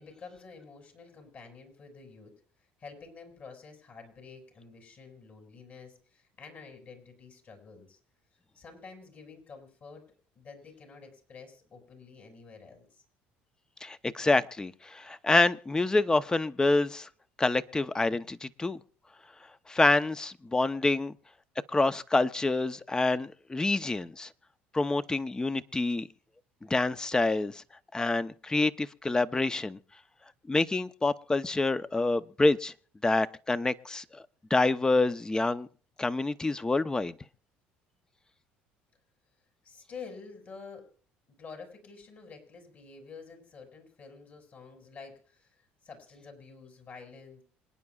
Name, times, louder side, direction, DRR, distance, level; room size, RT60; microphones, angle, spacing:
voice 1, 0.0-2.3 2.8-8.0 8.5-10.0 10.3-13.0 39.6-40.9 41.3-47.4, left 5 dB, 45° left, 6.6 m, -49 dB
voice 2, 13.8-17.1 17.4-18.8 19.7-21.1 21.7-24.3 24.7-26.1 26.7-27.6 27.9-29.8 30.5-32.7 33.0-34.0 34.5-35.7 36.0-37.1, left 2 dB, 15° left, 0.8 m, -27 dB
27.0 x 9.7 x 2.4 m
supercardioid pair, 85°, 4 cm